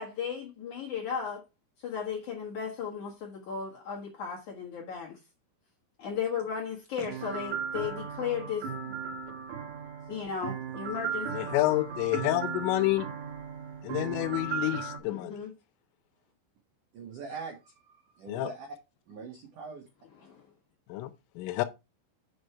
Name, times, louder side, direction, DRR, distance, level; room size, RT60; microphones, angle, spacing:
voice 1, 0.0-1.4 1.8-5.2 6.0-9.0 10.1-11.3 15.0-15.5, left 7 dB, 65° left, 1.9 m, -35 dB
sound 1, 7.1-15.0, right 6 dB, 65° right, 3.3 m, -36 dB
voice 2, 11.3-13.1 13.8-15.4 18.3-18.5 20.9-21.1 21.4-21.6, left 17 dB, 80° left, 3.2 m, -28 dB
voice 3, 16.9-18.7 19.1-19.8, right 5 dB, 85° right, 1.8 m, -42 dB
7.1 x 6.5 x 4.5 m
omnidirectional pair, 5.9 m